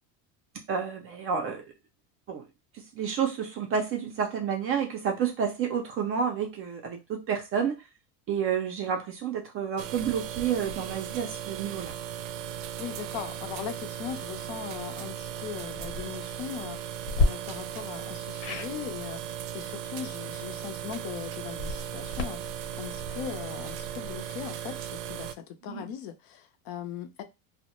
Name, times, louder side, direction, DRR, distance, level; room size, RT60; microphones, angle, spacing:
voice 1, 0.7-1.6 2.3-2.5 2.7-7.8 8.3-11.9 25.7-25.9, right 7 dB, 35° right, 0.4 m, -30 dB
sound 1, 9.8-25.3, right 10 dB, 85° right, 0.5 m, -37 dB
voice 2, 12.8-27.2, left 9 dB, 55° left, 0.5 m, -39 dB
sound 2, 15.7-16.0 17.1-17.3 18.4-18.7 21.5-24.3, left 2 dB, 75° left, 1.1 m, -31 dB
2.2 x 2.1 x 2.9 m
cardioid pair, 140°, 44 cm